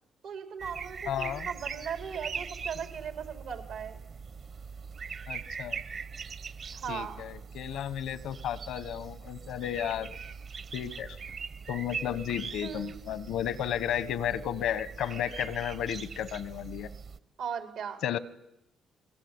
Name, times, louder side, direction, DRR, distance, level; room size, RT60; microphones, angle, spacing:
voice 1, 0.2-4.0 6.7-7.2 12.6-13.0 17.4-18.0, right 7 dB, 85° right, 5 dB, 4.5 m, -38 dB
sound 1, 0.6-17.2, right 6 dB, 55° right, 1.2 m, -41 dB
voice 2, 1.1-1.5 5.3-5.8 6.9-10.2 10.7-11.2 11.7-16.9 18.0-18.2, left 10 dB, 80° left, 16 dB, 1.2 m, -33 dB
29.5 x 21.0 x 9.6 m, 0.84 s
cardioid pair, 90°, 0 cm